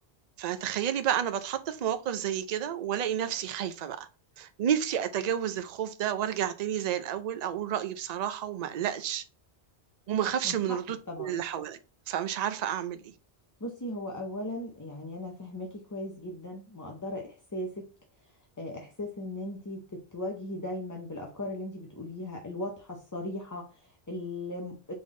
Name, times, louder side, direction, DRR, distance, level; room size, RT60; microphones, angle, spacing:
voice 1, 0.4-4.1 4.4-9.2 10.1-11.8 12.1-13.1, right 9 dB, 55° right, 0.5 m, -30 dB
voice 2, 10.4-10.8 11.1-11.4 13.6-17.9 18.6-24.9, left 1 dB, 25° left, 0.5 m, -38 dB
3.9 x 3.5 x 3.7 m
omnidirectional pair, 1.1 m